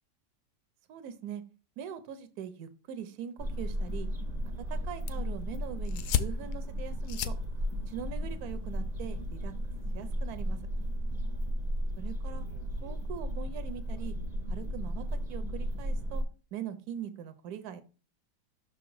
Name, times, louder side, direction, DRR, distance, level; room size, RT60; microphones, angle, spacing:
voice 1, 0.9-1.4 1.8-4.1 4.7-7.3 7.9-9.5 9.9-10.6 12.0-12.5 12.8-14.1 14.5-16.2 16.5-17.8, right 9 dB, 65° right, 11 dB, 1.1 m, -42 dB
sound 1, 3.4-16.2, equal, 30° right, 1.0 m, -34 dB
sound 2, 4.8-9.8, left 10 dB, 80° left, 0.7 m, -37 dB
6.0 x 3.8 x 4.7 m, 0.34 s
omnidirectional pair, 2.0 m